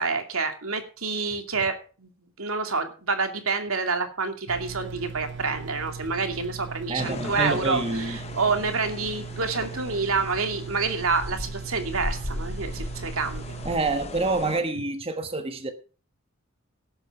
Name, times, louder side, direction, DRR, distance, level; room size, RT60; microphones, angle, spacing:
voice 1, 0.0-2.1 2.4-13.4, right 4 dB, 75° right, 2.6 m, -28 dB
sound 1, 4.5-13.8, right 5 dB, 55° right, 0.8 m, -38 dB
voice 2, 6.9-8.2 13.6-15.7, right 2 dB, 25° right, 1.3 m, -27 dB
sound 2, 7.0-14.6, left 2 dB, 30° left, 0.9 m, -37 dB
17.5 x 8.1 x 4.9 m
head